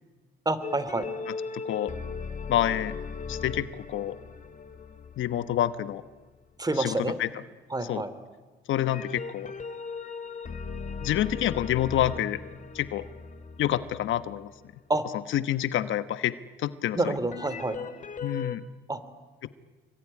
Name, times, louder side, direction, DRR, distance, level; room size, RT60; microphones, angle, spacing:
voice 1, 0.4-1.1 6.6-7.2 7.7-8.1 14.9-15.0 16.9-17.8 18.9-19.0, right 2 dB, 20° right, 13 dB, 2.9 m, -28 dB
sound 1, 0.6-6.3 8.7-14.7 17.3-18.6, left 5 dB, 40° left, 2.3 m, -38 dB
voice 2, 1.3-1.9 2.5-3.0 3.3-4.2 5.2-6.0 6.8-7.3 7.9-8.0 8.7-9.5 11.0-12.4 12.7-13.1 13.6-14.5 15.3-17.1 18.2-18.7 19.4-19.5, left 12 dB, 75° left, 13 dB, 1.1 m, -28 dB
26.0 x 23.0 x 9.9 m, 1.3 s
cardioid pair, 90°, 20 cm